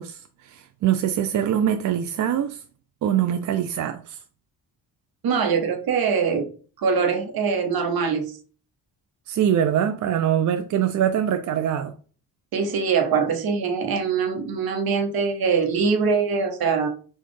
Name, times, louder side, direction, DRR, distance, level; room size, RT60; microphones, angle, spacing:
voice 1, 0.0-2.6 3.0-4.2 9.3-11.9, right 10 dB, 50° right, 0.4 m, -23 dB
voice 2, 5.2-6.5 6.8-8.3 12.5-16.9, right 5 dB, 65° right, 1.0 m, -23 dB
4.1 x 2.4 x 3.2 m
supercardioid pair, 60°, 39 cm